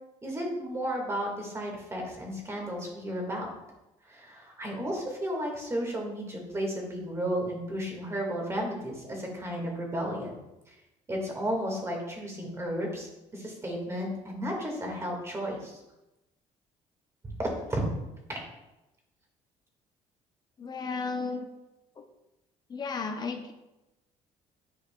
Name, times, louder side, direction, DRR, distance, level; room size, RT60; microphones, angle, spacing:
voice 1, 0.2-3.5 4.1-10.3 10.7-10.8 11.1-15.8 17.4-17.8 18.3-18.4, equal, 20° right, 0 dB, 1.9 m, -33 dB
voice 2, 20.6-21.5 22.7-23.5, left 4 dB, 35° left, 6 dB, 0.7 m, -33 dB
10.5 x 4.8 x 2.3 m, 0.97 s
cardioid pair, 115°, 13 cm